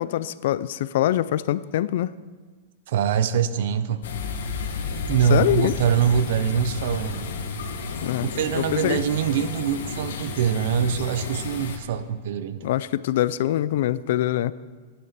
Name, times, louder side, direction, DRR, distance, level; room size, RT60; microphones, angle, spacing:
voice 1, 0.0-2.1 5.3-5.8 8.0-8.3 8.5-9.0 12.6-14.5, left 13 dB, 60° left, 17 dB, 0.4 m, -24 dB
voice 2, 2.9-4.0 5.1-7.3 8.3-12.7, right 8 dB, 60° right, 12 dB, 0.8 m, -24 dB
sound 1, 4.0-11.8, left 5 dB, 80° left, 1.8 m, -32 dB
13.0 x 11.0 x 5.9 m, 1.4 s
supercardioid pair, 160°, 0 cm